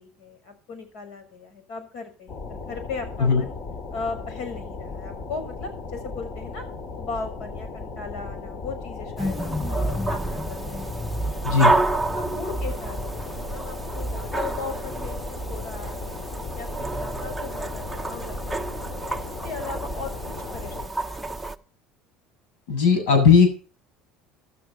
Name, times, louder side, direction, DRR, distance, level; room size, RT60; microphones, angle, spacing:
voice 1, 0.0-3.6 3.9-6.7 6.9-10.9 11.6-16.2 16.6-21.4, left 4 dB, 60° left, 9 dB, 6.2 m, -37 dB
sound 1, 2.3-20.9, left 4 dB, 35° left, 2.8 m, -36 dB
sound 2, 9.2-21.6, right 2 dB, ahead, 0.8 m, -29 dB
voice 2, 22.7-23.5, left 5 dB, 75° left, 6 dB, 7.8 m, -17 dB
15.0 x 12.5 x 4.3 m, 0.38 s
cardioid pair, 150°, 0 cm